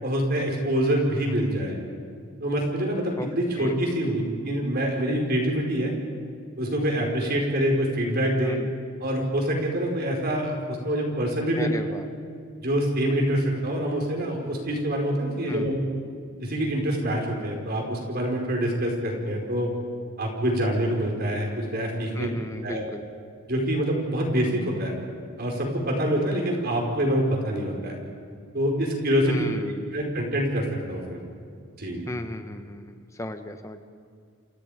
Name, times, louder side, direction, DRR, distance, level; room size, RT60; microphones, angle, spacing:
voice 1, 0.0-1.8 2.4-5.9 6.6-8.5 9.0-11.9 12.6-15.9 16.4-19.7 20.2-22.3 22.6-22.9 23.5-25.0 25.4-28.0 28.5-29.5 29.9-31.2 31.8-32.1, equal, 45° right, 1 dB, 4.8 m, -26 dB
voice 2, 11.5-12.0 15.5-15.7 22.1-23.1 29.3-29.9 32.1-33.8, left 1 dB, 15° left, 7 dB, 1.3 m, -35 dB
29.5 x 27.5 x 5.1 m, 2.2 s
head